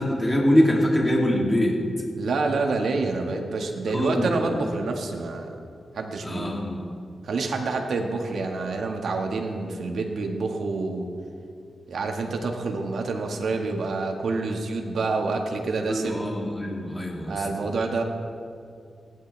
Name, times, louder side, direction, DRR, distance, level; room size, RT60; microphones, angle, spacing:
voice 1, 0.0-1.7 3.9-4.7 6.2-6.9 15.9-17.5, equal, 15° left, -2 dB, 2.9 m, -24 dB
voice 2, 2.2-5.5 5.9-6.5 7.2-11.1 11.9-16.3 17.3-18.0, right 3 dB, 80° right, 2 dB, 1.8 m, -27 dB
28.0 x 11.5 x 3.5 m, 2.4 s
cardioid pair, 65°, 0 cm